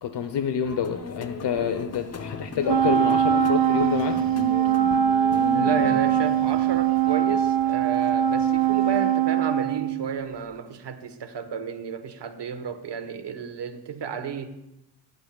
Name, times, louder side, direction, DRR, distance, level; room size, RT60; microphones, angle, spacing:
voice 1, 0.0-4.2, left 7 dB, 75° left, 0.9 m, -28 dB
sound 1, 0.6-9.1, left 4 dB, 35° left, 0.8 m, -36 dB
Wind instrument woodwind instrument, 2.7-10.3, right 9 dB, 55° right, 0.9 m, -22 dB
voice 2, 5.5-14.5, right 6 dB, 75° right, 1.2 m, -32 dB
18.5 x 10.5 x 2.3 m
cardioid pair, 55°, 42 cm